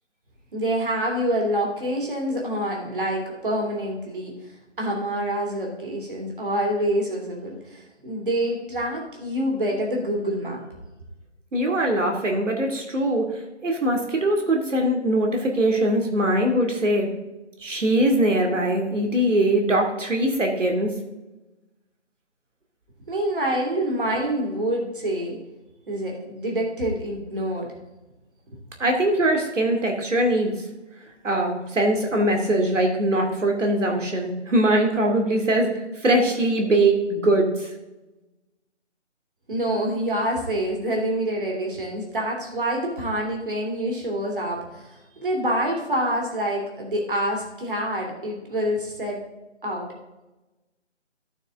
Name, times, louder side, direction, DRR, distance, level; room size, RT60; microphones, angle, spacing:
voice 1, 0.5-4.3 4.8-10.6 23.1-25.4 25.9-27.7 39.5-49.2 49.6-49.9, right 1 dB, 45° right, -1 dB, 2.8 m, -26 dB
voice 2, 11.5-17.1 17.6-20.9 28.8-30.7 31.2-37.7, right 1 dB, 90° right, 2 dB, 2.5 m, -22 dB
12.5 x 9.0 x 3.7 m, 1.1 s
hypercardioid pair, 180°, 36 cm